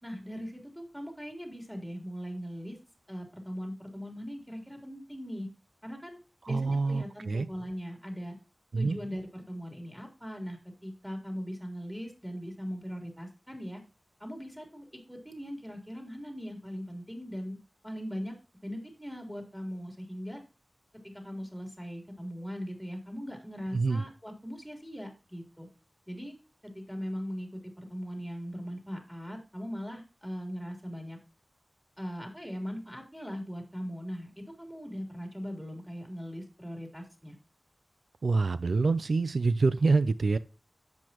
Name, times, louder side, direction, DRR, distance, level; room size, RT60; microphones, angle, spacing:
voice 1, 0.0-2.8 3.1-5.5 5.8-6.2 6.5-8.4 8.8-13.8 14.2-17.6 17.8-18.3 18.6-20.4 21.0-25.7 26.1-26.3 26.6-31.2 32.0-37.3, equal, ahead, 3.6 m, -40 dB
voice 2, 6.5-7.5 8.7-9.0 23.7-24.0 38.2-40.4, right 3 dB, 85° right, 0.4 m, -26 dB
10.5 x 8.3 x 3.0 m
wide cardioid pair, 75°, 0 cm